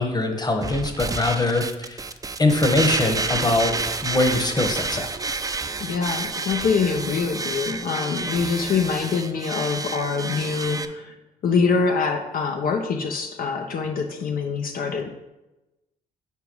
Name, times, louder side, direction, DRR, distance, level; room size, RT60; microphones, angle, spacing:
voice 1, 0.0-2.0 2.4-3.7 4.0-5.1, left 2 dB, 25° left, 5 dB, 1.2 m, -22 dB
sound 1, 0.6-10.9, right 4 dB, 25° right, 0.5 m, -29 dB
voice 2, 5.8-11.1 11.4-15.2, left 5 dB, 65° left, 3 dB, 0.7 m, -24 dB
4.7 x 4.6 x 5.4 m, 0.99 s
supercardioid pair, 60°, 16 cm